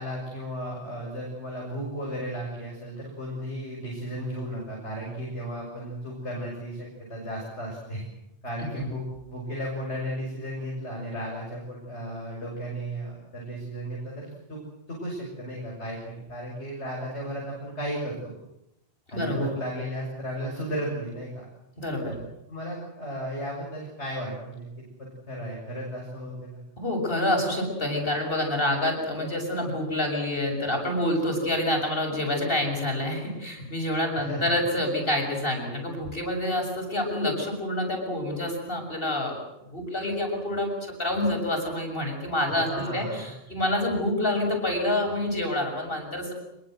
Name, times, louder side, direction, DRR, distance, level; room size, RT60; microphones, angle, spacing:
voice 1, 0.0-8.0 8.4-14.6 14.9-18.3 19.1-21.5 22.0-22.2 22.5-26.6 34.1-34.6 42.5-43.3, equal, 80° left, -2 dB, 7.2 m, -34 dB
voice 2, 21.8-22.1 26.8-39.3 39.7-46.3, left 1 dB, 55° left, 2 dB, 7.2 m, -27 dB
26.0 x 23.0 x 7.9 m, 0.85 s
omnidirectional pair, 1.1 m